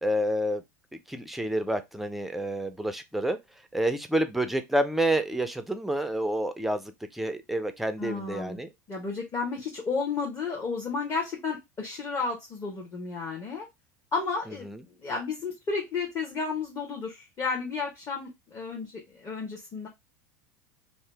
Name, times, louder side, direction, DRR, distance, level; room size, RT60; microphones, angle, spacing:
voice 1, 0.0-0.6 1.1-3.4 3.7-8.7 14.6-14.8, right 1 dB, ahead, 0.4 m, -28 dB
voice 2, 8.0-8.6 8.9-13.7 14.1-19.9, left 4 dB, 30° left, 0.9 m, -32 dB
2.7 x 2.0 x 3.2 m
supercardioid pair, 110°, 10 cm